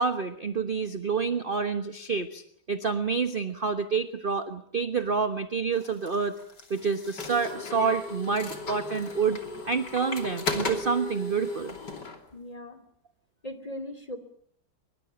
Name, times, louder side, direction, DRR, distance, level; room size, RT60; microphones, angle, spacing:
voice 1, 0.0-2.4 2.7-6.4 6.7-9.4 9.7-11.7, right 5 dB, 30° right, 9 dB, 1.1 m, -28 dB
sound 1, 5.8-12.2, left 2 dB, 55° left, 3.5 m, -35 dB
voice 2, 12.3-12.8 13.4-14.2, left 1 dB, 15° left, 10 dB, 2.9 m, -38 dB
24.0 x 23.5 x 8.9 m, 0.65 s
omnidirectional pair, 2.2 m